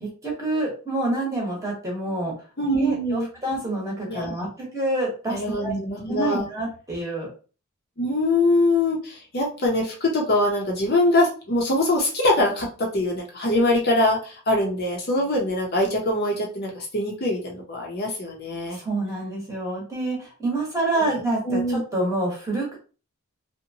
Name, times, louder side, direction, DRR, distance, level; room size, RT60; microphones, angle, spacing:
voice 1, 0.0-2.3 2.7-5.7 6.1-7.3 18.8-22.8, right 2 dB, 15° right, -3 dB, 0.9 m, -27 dB
voice 2, 2.6-3.3 4.1-4.3 5.3-6.5 8.0-18.8 21.0-21.8, left 1 dB, 45° left, -1 dB, 0.6 m, -23 dB
2.8 x 2.2 x 2.6 m, 0.36 s
head